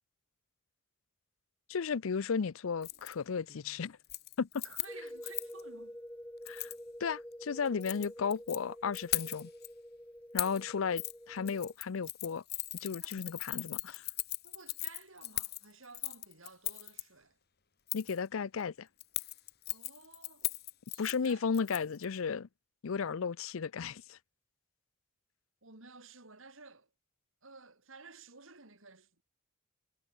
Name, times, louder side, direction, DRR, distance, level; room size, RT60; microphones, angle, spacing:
voice 1, 1.7-4.0 4.4-4.6 6.5-6.7 7.0-9.5 10.3-12.4 12.8-14.0 17.9-18.9 21.0-22.5 22.8-24.2, left 6 dB, 80° left, 0.5 m, -34 dB
Keys jangling, 2.8-3.1 3.5-3.8 4.0-5.6 6.5-6.8 7.7-8.6 8.9-9.7 10.4-10.6 11.0-11.1 11.5-17.0 17.9-18.2 19.0-22.1 22.3-22.4, left 16 dB, 50° left, 2.0 m, -39 dB
voice 2, 4.6-6.0 13.0-13.2 14.4-17.4 19.7-20.6 20.9-21.5 25.6-26.9 27.4-29.2, right 4 dB, 75° right, 4.4 m, -54 dB
sound 1, 4.9-11.7, equal, 5° left, 2.9 m, -48 dB
head